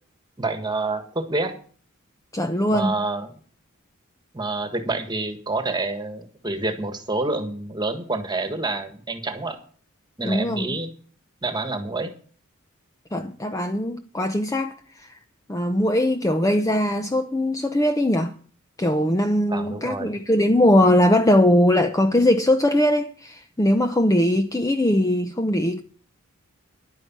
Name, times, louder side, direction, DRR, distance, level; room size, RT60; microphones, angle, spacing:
voice 1, 0.4-1.6 2.7-3.3 4.3-9.6 10.2-10.9 11.4-12.1 19.5-20.2, right 2 dB, 20° right, 1.6 m, -28 dB
voice 2, 2.3-2.9 10.2-10.7 13.1-14.8 15.5-18.3 18.8-25.8, left 1 dB, 15° left, 0.7 m, -20 dB
11.0 x 9.6 x 6.0 m
head